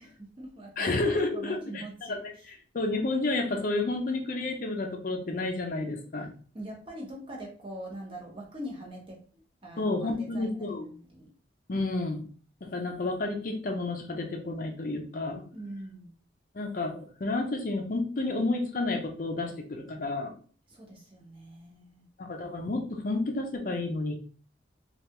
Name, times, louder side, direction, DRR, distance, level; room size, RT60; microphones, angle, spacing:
voice 1, 0.0-2.2 2.5-2.6 6.5-9.2 9.6-11.3 11.7-11.9 15.5-16.1 20.7-22.1, right 1 dB, 30° right, -3 dB, 0.8 m, -43 dB
voice 2, 0.8-6.3 9.8-10.9 11.7-12.2 12.6-15.4 16.5-20.3 22.2-24.1, left 2 dB, 45° left, 3 dB, 0.5 m, -31 dB
3.3 x 2.3 x 2.8 m, 0.42 s
head